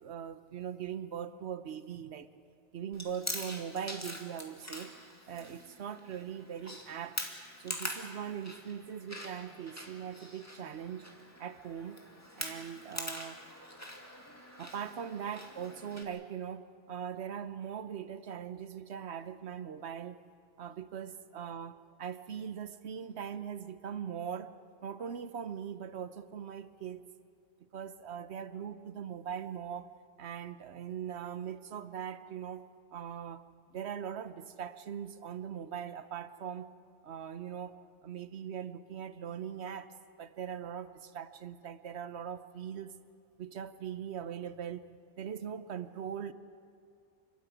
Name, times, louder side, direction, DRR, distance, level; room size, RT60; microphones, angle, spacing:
voice 1, 0.0-2.3 2.7-4.9 5.3-7.2 7.6-11.1 11.4-12.0 12.4-13.4 14.6-20.2 20.6-21.7 22.0-24.5 24.8-27.0 27.7-29.9 30.2-32.6 32.9-33.4 33.7-36.7 37.0-37.8 38.0-39.9 40.2-42.9 43.4-44.9 45.2-46.3, right 8 dB, 65° right, 12 dB, 1.1 m, -41 dB
Chewing mastication, 2.9-16.0, left 1 dB, 15° left, 2.2 m, -44 dB
28.5 x 13.0 x 9.4 m, 2.3 s
omnidirectional pair, 1.2 m